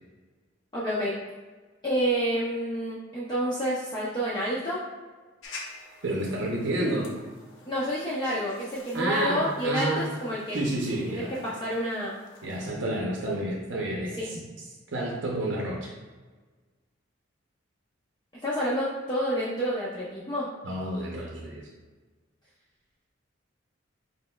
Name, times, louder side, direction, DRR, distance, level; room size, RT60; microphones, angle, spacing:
voice 1, 0.7-1.2 1.8-4.8 7.6-10.6 11.1-12.1 14.2-14.3 18.4-20.5, equal, 20° left, -8 dB, 0.6 m, -29 dB
sound 1, 5.4-12.7, left 3 dB, 80° left, 0.7 m, -48 dB
voice 2, 6.0-7.1 8.9-10.1 10.5-11.3 12.4-14.4 14.9-16.0 20.6-21.7, right 1 dB, 70° right, -2 dB, 0.6 m, -29 dB
4.9 x 4.1 x 2.2 m, 1.3 s
head